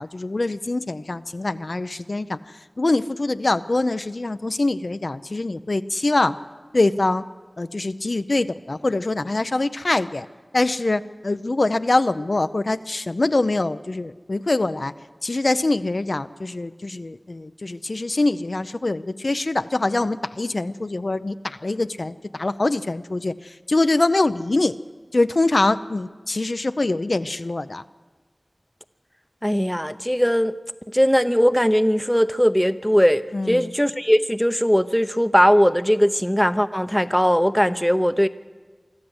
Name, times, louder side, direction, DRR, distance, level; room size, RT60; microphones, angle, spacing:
voice 1, 0.0-2.4 2.8-6.4 6.7-7.2 7.6-10.3 10.5-14.9 15.2-24.8 25.1-27.8 33.3-33.7, left 2 dB, 70° left, 11 dB, 0.6 m, -24 dB
voice 2, 29.4-30.5 30.9-38.3, equal, 5° left, 12 dB, 0.7 m, -19 dB
24.5 x 14.0 x 7.9 m, 1.4 s
wide cardioid pair, 50°, 0 cm